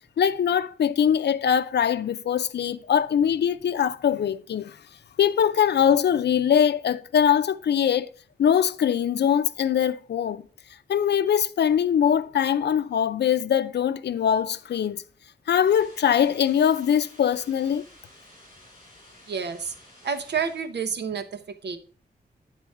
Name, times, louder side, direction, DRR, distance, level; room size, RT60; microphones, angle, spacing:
voice 1, 0.2-4.8 5.2-8.1 8.4-10.4 10.9-15.0 15.5-17.8, left 8 dB, 90° left, 0.5 m, -22 dB
sound 1, 15.7-20.7, left 1 dB, 25° left, 3.8 m, -52 dB
voice 2, 19.3-19.7 20.0-21.8, right 6 dB, 90° right, 1.0 m, -29 dB
9.8 x 4.0 x 4.7 m
wide cardioid pair, 140°, 17 cm